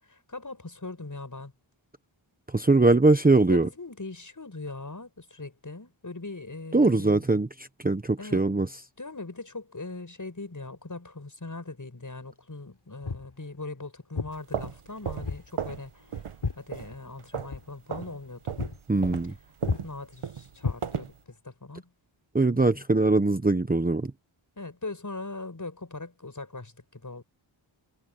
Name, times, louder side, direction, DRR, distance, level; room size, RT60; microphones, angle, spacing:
voice 1, 0.1-1.5 3.5-7.2 8.2-8.4 9.0-16.2 16.6-18.6 19.8-21.9 22.5-22.8 24.6-27.2, left 3 dB, 40° left, 7.8 m, -40 dB
voice 2, 2.5-3.7 6.7-8.7 18.9-19.3 22.3-24.1, right 2 dB, 20° right, 1.0 m, -22 dB
Walk footsteps, 13.0-13.3 14.1-14.4 15.2-15.5 15.8-17.2 17.5-17.7 18.1-18.3 18.6-18.8 19.1-19.3 19.6-19.9 20.6-21.3, left 4 dB, 70° left, 6.0 m, -33 dB
sound 1, 14.3-15.9 16.1-16.4 16.7-17.6 17.9-18.1 18.5-21.2, right 7 dB, 90° right, 1.4 m, -35 dB
wide cardioid pair, 75°, 49 cm